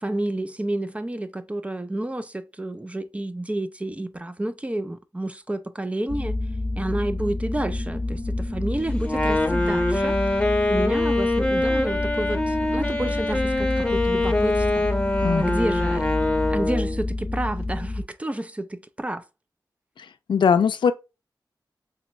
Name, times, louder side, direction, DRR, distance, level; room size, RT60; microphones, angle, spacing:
voice 1, 0.0-6.4 6.8-10.2 10.7-14.9 15.4-16.1 16.5-19.2, right 1 dB, 15° right, 0.4 m, -30 dB
sound 1, 6.1-18.0, left 2 dB, 65° left, 0.8 m, -29 dB
Wind instrument woodwind instrument, 9.0-17.0, left 2 dB, 10° left, 0.8 m, -24 dB
voice 2, 20.3-20.9, left 6 dB, 90° left, 0.4 m, -19 dB
3.3 x 3.3 x 3.1 m
wide cardioid pair, 90°, 8 cm